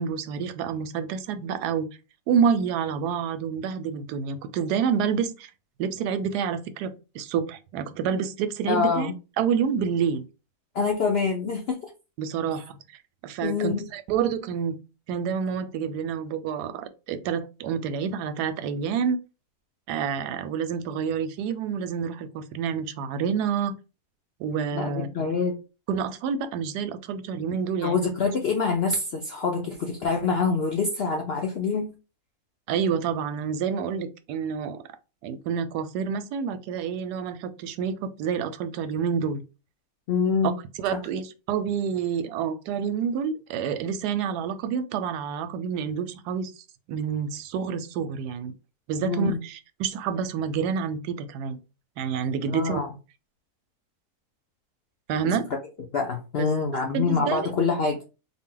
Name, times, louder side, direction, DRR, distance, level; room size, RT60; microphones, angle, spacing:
voice 1, 0.0-1.9 2.3-5.5 5.8-10.2 12.2-12.7 13.2-14.8 15.1-19.2 19.9-23.7 24.4-25.1 25.9-28.0 32.7-34.8 35.2-39.4 40.8-46.5 46.9-48.5 48.9-51.6 52.0-52.8 55.1-55.5 56.4-56.5 56.9-57.4, right 7 dB, 85° right, 1.1 m, -28 dB
voice 2, 8.7-9.1 10.7-11.8 13.4-13.9 24.7-25.5 27.8-31.9 40.1-40.6 40.9-41.0 49.0-49.4 52.5-52.9 55.2-55.4 55.9-58.0, left 5 dB, 70° left, 0.5 m, -25 dB
4.0 x 2.0 x 3.7 m
omnidirectional pair, 1.7 m